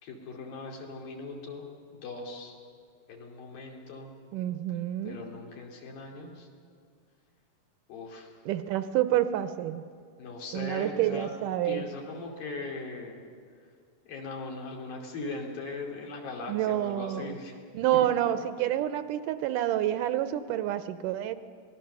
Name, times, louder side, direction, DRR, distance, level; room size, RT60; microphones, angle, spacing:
voice 1, 0.0-1.7 2.0-2.5 3.1-4.1 5.0-6.5 7.9-8.3 10.2-11.3 11.6-13.2 14.1-17.5 17.9-18.1, left 3 dB, 85° left, 0 dB, 4.6 m, -39 dB
voice 2, 4.3-5.2 8.5-9.8 10.5-11.8 16.5-17.3 17.7-21.4, right 12 dB, 80° right, 12 dB, 2.1 m, -28 dB
26.0 x 19.5 x 6.8 m, 2.1 s
omnidirectional pair, 4.0 m